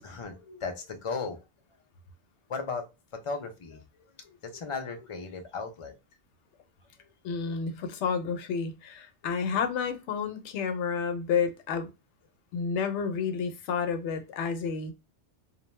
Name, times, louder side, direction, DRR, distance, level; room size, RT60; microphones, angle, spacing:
voice 1, 0.0-1.4 2.5-2.8 3.2-3.8 4.2-5.9, left 4 dB, 45° left, 0.4 m, -36 dB
voice 2, 7.2-11.9 12.5-14.9, left 6 dB, 80° left, 0.9 m, -30 dB
2.5 x 2.1 x 3.0 m
omnidirectional pair, 1.2 m